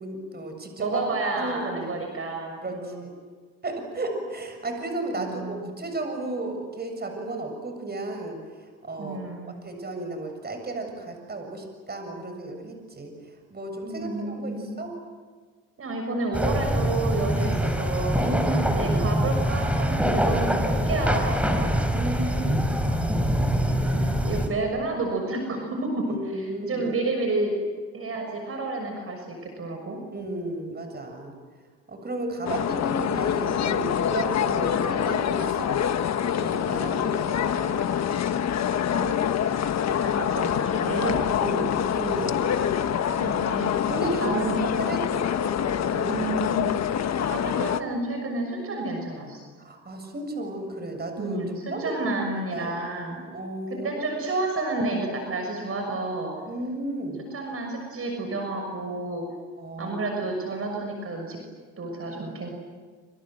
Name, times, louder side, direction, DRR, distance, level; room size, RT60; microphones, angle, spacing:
voice 1, 0.0-1.0 1.4-2.1 2.6-2.9 3.6-8.4 8.8-9.2 9.6-13.1 13.5-14.9 17.4-17.6 18.2-19.2 21.9-22.7 26.1-26.9 30.1-31.3 31.9-35.7 36.2-38.0 41.0-42.4 43.9-44.3 44.6-46.3 46.7-46.9 49.6-51.4 51.7-51.8 52.3-52.8 53.2-54.0 56.5-57.2 59.6-60.0, right 2 dB, 30° right, 5 dB, 7.4 m, -34 dB
voice 2, 0.8-3.1 5.1-5.7 9.0-9.6 13.8-14.7 15.8-18.2 18.7-21.7 23.6-26.1 26.3-27.6 27.9-30.0 38.7-39.1 40.0-41.2 43.2-43.7 44.2-44.6 46.1-46.7 47.2-49.4 51.2-53.2 53.7-56.3 57.2-59.2 59.8-61.4 61.8-62.5, right 2 dB, 50° right, 3 dB, 6.3 m, -30 dB
sound 1, 16.3-24.5, equal, 5° right, 4.7 m, -24 dB
sound 2, 32.4-47.8, left 9 dB, 60° left, 1.4 m, -25 dB
27.5 x 27.0 x 7.8 m, 1.5 s
cardioid pair, 90°, 30 cm